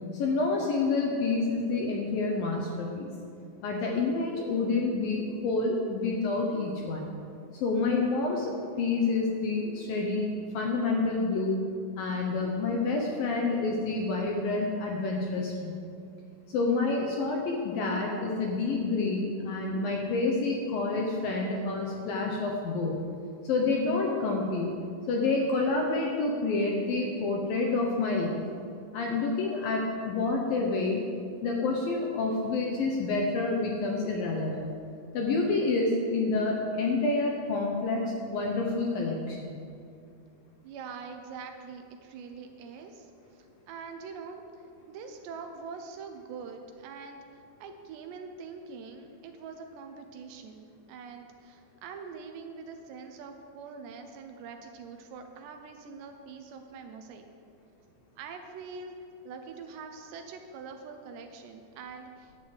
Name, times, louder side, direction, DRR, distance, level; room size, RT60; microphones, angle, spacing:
voice 1, 0.1-3.1 3.6-7.1 7.5-11.6 12.0-15.7 16.5-23.0 23.4-24.7 25.1-28.4 28.9-31.0 31.4-34.7 35.1-39.6, left 3 dB, 70° left, 0 dB, 2.3 m, -28 dB
voice 2, 40.6-44.4 44.9-57.2 58.2-58.9 59.2-62.3, right 5 dB, 75° right, 5 dB, 2.9 m, -44 dB
11.0 x 10.5 x 7.9 m, 2.4 s
omnidirectional pair, 5.4 m